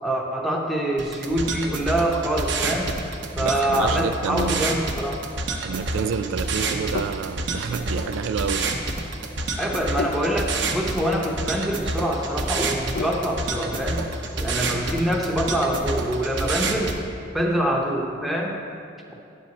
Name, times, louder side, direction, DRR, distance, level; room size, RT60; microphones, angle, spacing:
voice 1, 0.0-2.9 3.4-5.2 9.6-14.1 14.4-17.0 17.3-18.5, right 1 dB, ahead, -1 dB, 0.8 m, -25 dB
sound 1, 1.0-17.0, right 2 dB, 65° right, 0.8 m, -28 dB
voice 2, 3.4-4.6 5.6-8.7, right 6 dB, 90° right, 12 dB, 0.3 m, -29 dB
Sink (filling or washing), 4.1-13.5, left 4 dB, 55° left, 0.4 m, -37 dB
10.5 x 6.4 x 4.1 m, 2.5 s
head